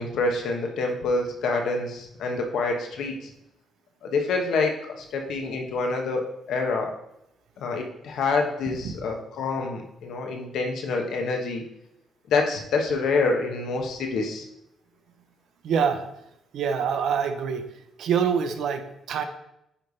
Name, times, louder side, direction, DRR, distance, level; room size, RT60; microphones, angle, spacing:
voice 1, 0.0-3.3 4.0-6.9 7.6-11.6 12.3-14.4, left 3 dB, 75° left, 2 dB, 1.2 m, -27 dB
voice 2, 15.6-16.0 16.5-17.7 18.0-19.2, right 7 dB, 75° right, 8 dB, 0.8 m, -25 dB
9.9 x 3.3 x 4.1 m, 0.82 s
cardioid pair, 90°, 0 cm